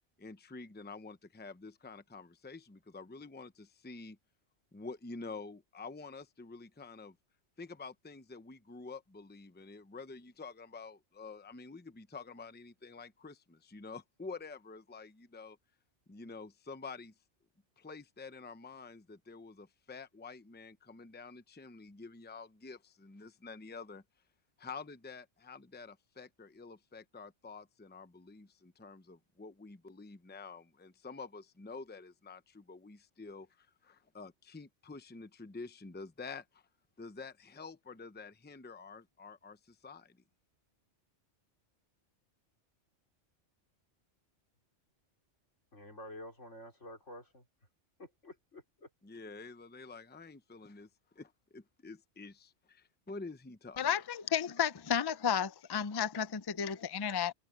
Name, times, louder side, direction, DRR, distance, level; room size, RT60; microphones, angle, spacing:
voice 1, 0.2-4.2 4.7-7.2 7.6-15.6 16.1-17.1 17.8-24.0 24.6-36.6 37.0-40.2 49.0-50.9 51.1-53.8, left 4 dB, 10° left, 0.7 m, -48 dB
voice 2, 45.7-47.5 48.0-48.9, left 1 dB, 90° left, 5.2 m, -49 dB
voice 3, 53.8-57.3, left 8 dB, 35° left, 0.4 m, -32 dB
omnidirectional pair, 1.2 m